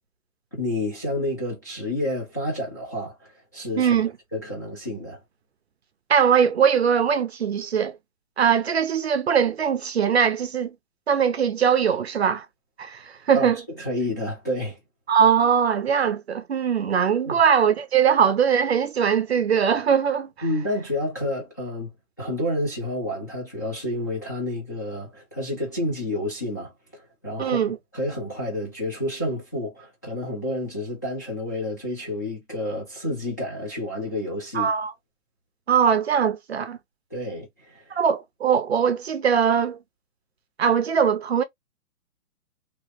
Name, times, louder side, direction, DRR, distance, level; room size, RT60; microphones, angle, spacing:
voice 1, 0.5-3.9 4.3-5.2 13.3-13.5 13.8-14.8 17.2-17.4 20.4-21.9 22.2-34.7 37.1-38.0, left 1 dB, 15° left, 0.5 m, -30 dB
voice 2, 3.8-4.1 6.1-8.0 8.4-10.7 11.1-12.5 12.8-13.6 15.1-20.3 27.4-27.8 34.5-34.9 35.7-36.8 37.9-39.8 40.6-41.4, right 7 dB, 45° right, 0.6 m, -21 dB
2.9 x 2.8 x 2.8 m
hypercardioid pair, 165°, 43 cm